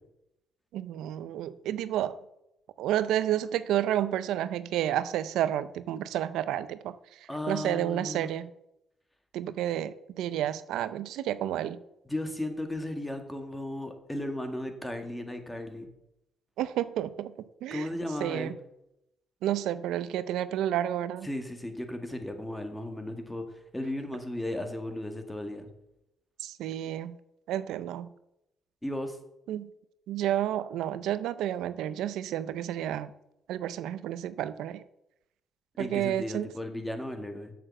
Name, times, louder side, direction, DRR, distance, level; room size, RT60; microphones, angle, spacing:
voice 1, 0.7-2.2 2.8-6.9 7.5-8.5 9.3-11.8 16.6-17.3 17.6-17.9 18.2-18.5 19.4-21.3 26.4-27.2 27.5-28.1 29.5-29.7 30.1-33.1 33.5-34.8 35.8-36.5, right 11 dB, 85° right, 14 dB, 0.5 m, -30 dB
voice 2, 7.3-8.3 12.1-15.9 17.7-18.6 21.2-25.7 28.8-29.2 35.8-37.5, left 1 dB, 10° left, 6 dB, 1.9 m, -35 dB
7.8 x 6.8 x 7.7 m, 0.83 s
cardioid pair, 90°, 0 cm